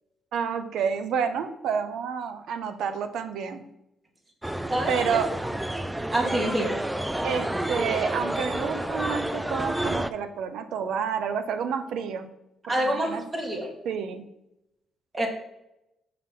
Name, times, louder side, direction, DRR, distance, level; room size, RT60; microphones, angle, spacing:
voice 1, 0.3-3.7 4.9-5.3 7.2-12.3 12.8-13.2 13.8-14.2, right 7 dB, 80° right, 9 dB, 0.7 m, -29 dB
sound 1, 4.4-10.1, right 1 dB, 10° right, 0.4 m, -29 dB
voice 2, 4.7-5.2 6.1-6.8 12.7-13.7 15.1-15.3, right 1 dB, 25° right, 2 dB, 1.7 m, -27 dB
5.7 x 5.5 x 3.7 m, 0.87 s
cardioid pair, 90°, 0 cm